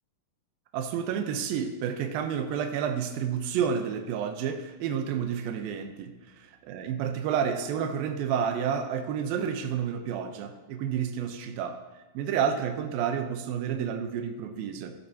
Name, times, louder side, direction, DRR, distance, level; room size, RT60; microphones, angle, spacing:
voice 1, 0.7-11.8 12.1-15.0, right 7 dB, 85° right, 6 dB, 2.6 m, -30 dB
13.5 x 13.0 x 2.8 m, 1.1 s
omnidirectional pair, 4.1 m